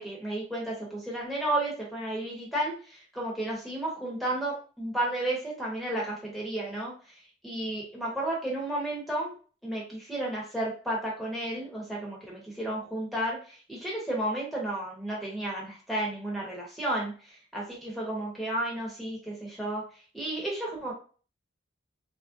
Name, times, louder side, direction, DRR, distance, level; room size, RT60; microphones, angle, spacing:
voice 1, 0.0-6.9 7.4-9.4 9.6-19.8 20.1-20.9, right 1 dB, ahead, -4 dB, 0.8 m, -32 dB
3.2 x 2.4 x 2.5 m, 0.38 s
head